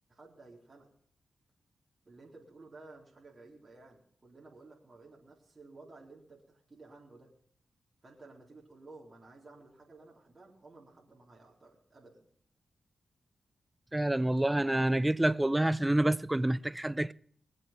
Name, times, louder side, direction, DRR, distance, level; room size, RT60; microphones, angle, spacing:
voice 1, 0.1-0.9 2.1-7.3 8.0-12.3, right 3 dB, 40° right, 3.9 m, -54 dB
voice 2, 13.9-17.1, right 1 dB, 15° right, 0.5 m, -28 dB
21.0 x 7.8 x 5.7 m
supercardioid pair, 45°, 0 cm